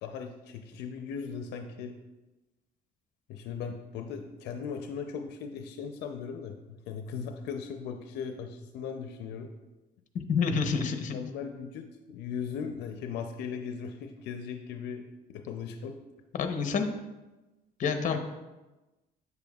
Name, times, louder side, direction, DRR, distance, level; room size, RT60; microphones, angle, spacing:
voice 1, 0.0-2.0 3.3-9.5 10.8-16.0, left 6 dB, 85° left, 5 dB, 0.6 m, -38 dB
voice 2, 10.3-11.2 16.3-16.9 17.8-18.2, left 5 dB, 50° left, 6 dB, 0.9 m, -28 dB
8.1 x 6.9 x 2.3 m, 1.1 s
cardioid pair, 110°, 17 cm